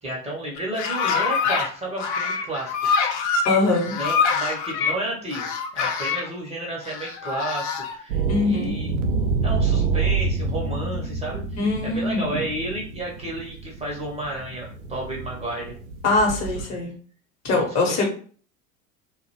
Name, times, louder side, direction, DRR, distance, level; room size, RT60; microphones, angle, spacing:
voice 1, 0.0-3.1 3.9-9.0 9.4-15.7 16.8-16.9 17.5-18.1, right 1 dB, 15° right, -3 dB, 0.7 m, -32 dB
sound 1, 0.6-1.7 2.0-4.9 5.3-6.3 6.8-8.0, left 5 dB, 55° left, 0.5 m, -25 dB
voice 2, 3.4-3.9 8.3-8.7 11.6-12.5 16.0-16.9 17.4-18.1, left 3 dB, 40° left, 1 dB, 0.9 m, -22 dB
sound 2, 8.1-16.6, right 4 dB, 75° right, 0.5 m, -27 dB
2.5 x 2.1 x 2.8 m, 0.43 s
figure-of-eight pair, 70°, 42 cm